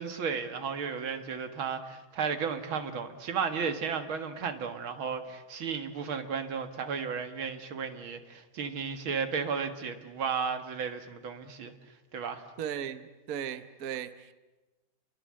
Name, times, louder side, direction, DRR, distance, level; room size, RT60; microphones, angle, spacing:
voice 1, 0.0-11.7 12.1-12.4, right 6 dB, 80° right, 8 dB, 2.6 m, -34 dB
voice 2, 12.6-14.3, right 9 dB, 50° right, 12 dB, 1.3 m, -37 dB
29.5 x 22.5 x 7.7 m, 1.1 s
omnidirectional pair, 2.2 m